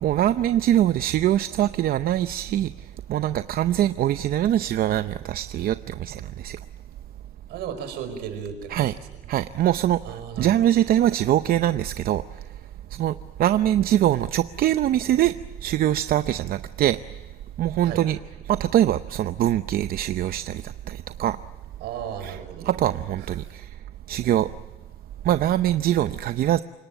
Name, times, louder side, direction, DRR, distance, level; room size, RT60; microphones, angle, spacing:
voice 1, 0.0-2.7 3.1-6.6 8.7-8.9 9.3-12.2 12.9-15.3 15.6-17.0 17.6-18.2 18.5-21.4 22.2-23.7 24.1-24.5 25.2-26.6, right 12 dB, 60° right, 11 dB, 0.7 m, -23 dB
voice 2, 7.5-8.9 10.0-10.6 17.8-18.0 21.8-22.7 23.2-23.3, right 8 dB, 85° right, 7 dB, 5.3 m, -34 dB
29.0 x 18.5 x 9.1 m, 1.2 s
cardioid pair, 110°, 17 cm